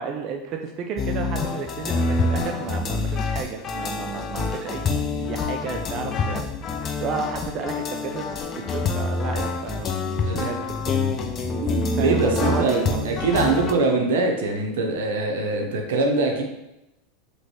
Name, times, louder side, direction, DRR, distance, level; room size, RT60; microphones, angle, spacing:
voice 1, 0.0-10.9 12.0-13.1 13.9-14.1, right 6 dB, 45° right, 3 dB, 0.3 m, -32 dB
sound 1, 1.0-13.7, left 4 dB, 35° left, 0.4 m, -26 dB
voice 2, 11.6-16.4, right 3 dB, 80° right, 3 dB, 0.6 m, -23 dB
3.0 x 3.0 x 2.9 m, 0.93 s
hypercardioid pair, 115°, 0 cm